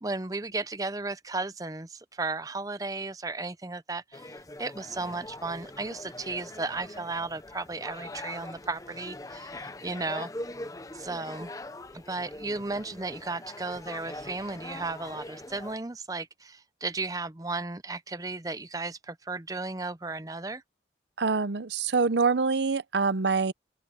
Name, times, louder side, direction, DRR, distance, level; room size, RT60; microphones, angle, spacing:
voice 1, 0.0-10.3 10.9-11.5 11.9-20.6, right 3 dB, 20° right, 0.7 m, -35 dB
sound 1, 4.1-15.8, left 1 dB, 20° left, 0.8 m, -42 dB
voice 2, 21.2-23.5, right 4 dB, 75° right, 0.7 m, -25 dB
open air
head